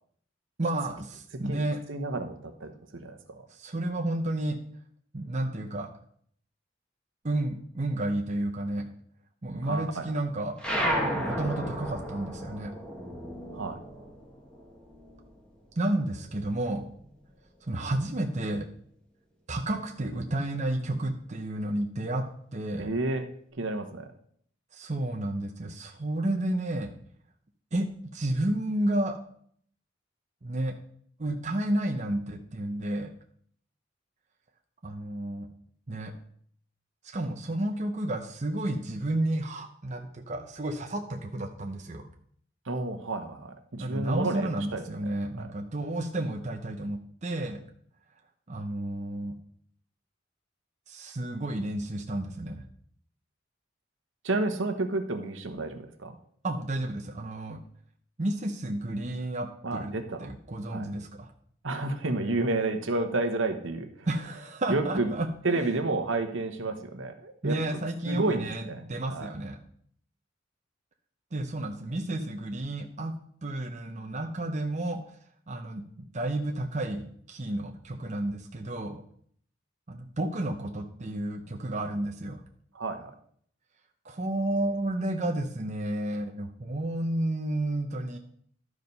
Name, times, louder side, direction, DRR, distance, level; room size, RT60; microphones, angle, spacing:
voice 1, 0.6-1.8 3.5-4.6 5.1-5.9 7.2-8.9 9.4-10.5 11.1-12.7 15.8-16.9 17.7-18.7 19.5-22.3 22.5-22.9 24.7-26.9 27.7-29.2 30.4-30.7 31.2-33.1 34.8-35.5 35.9-36.1 37.0-42.1 43.8-47.6 48.5-49.3 50.9-52.6 56.4-57.6 58.2-59.9 60.2-61.3 64.1-65.3 65.5-65.7 67.4-68.6 68.9-69.6 71.3-73.1 73.4-75.0 75.5-79.0 79.9-82.4 84.0-88.2, right 1 dB, 35° right, 3 dB, 0.8 m, -31 dB
voice 2, 1.9-3.5 9.6-10.2 13.5-13.8 22.8-23.3 23.5-24.1 42.6-45.5 54.2-56.2 59.6-60.3 60.7-60.9 61.6-64.1 64.7-65.1 65.4-69.3 82.7-83.1, right 2 dB, 75° right, 7 dB, 1.1 m, -31 dB
sound 1, 10.6-15.5 15.8-17.2, equal, 5° left, 1.7 m, -33 dB
12.0 x 5.0 x 5.4 m, 0.62 s
head